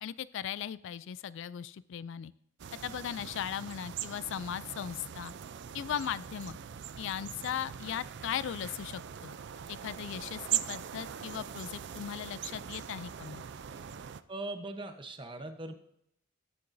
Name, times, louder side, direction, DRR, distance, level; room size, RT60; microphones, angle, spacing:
voice 1, 0.0-2.3 2.8-5.3 5.7-6.6 7.0-9.4 9.7-13.4, left 9 dB, 65° left, 17 dB, 0.3 m, -38 dB
sound 1, 2.6-14.2, right 10 dB, 60° right, 0.4 m, -41 dB
voice 2, 14.3-15.7, right 2 dB, 25° right, 7 dB, 0.9 m, -40 dB
17.0 x 6.9 x 2.6 m, 0.73 s
head